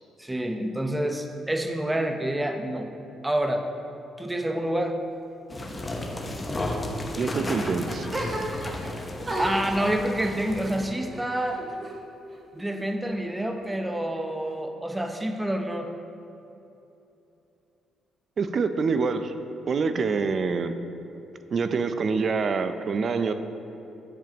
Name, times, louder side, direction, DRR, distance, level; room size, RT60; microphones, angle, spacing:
voice 1, 0.2-2.9 3.2-3.6 4.2-5.0 9.4-11.6 12.5-15.9, right 1 dB, 10° right, 5 dB, 0.7 m, -28 dB
sound 1, 5.5-10.8, left 1 dB, 20° left, 0.9 m, -33 dB
voice 2, 7.2-8.1 18.4-19.3 19.7-20.7 21.5-23.3, right 4 dB, 50° right, 9 dB, 0.5 m, -26 dB
sound 2, 8.1-8.9 9.2-12.0 12.3-13.1, right 1 dB, 30° right, 1.1 m, -35 dB
10.5 x 6.9 x 2.9 m, 2.9 s
cardioid pair, 90°, 0 cm